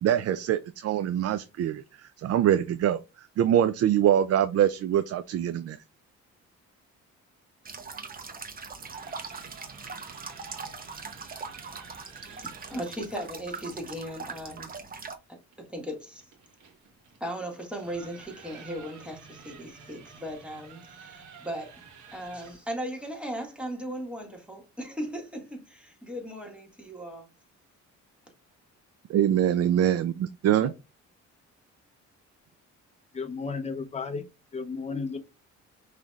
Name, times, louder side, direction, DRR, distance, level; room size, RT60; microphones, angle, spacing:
voice 1, 0.0-5.8 29.1-30.7, right 10 dB, 55° right, 0.4 m, -24 dB
sound 1, 7.6-15.2, right 4 dB, 30° right, 0.8 m, -41 dB
sound 2, 8.8-12.9 15.5-22.7, right 6 dB, 75° right, 1.3 m, -51 dB
voice 2, 12.1-14.7 15.6-16.3 17.2-21.8 22.1-27.3, equal, 5° right, 1.9 m, -37 dB
voice 3, 33.1-35.2, left 4 dB, 20° left, 0.7 m, -34 dB
5.5 x 3.2 x 2.4 m
cardioid pair, 90°, 30 cm